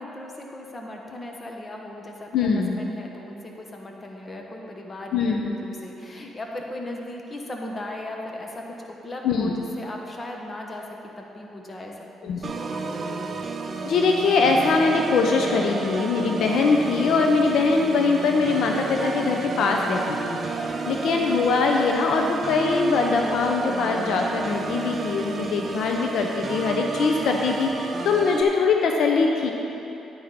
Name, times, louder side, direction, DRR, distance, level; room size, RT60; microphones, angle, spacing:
voice 1, 0.0-11.9 12.2-12.6, left 1 dB, 30° left, 0 dB, 1.4 m, -37 dB
voice 2, 2.3-2.8 5.1-5.5 9.2-9.5 12.2-12.5 13.8-29.5, left 4 dB, 75° left, 2 dB, 0.8 m, -22 dB
Organ, 12.4-28.4, right 3 dB, 40° right, 0.7 m, -31 dB
10.0 x 9.6 x 4.2 m, 2.9 s
cardioid pair, 90°, 0 cm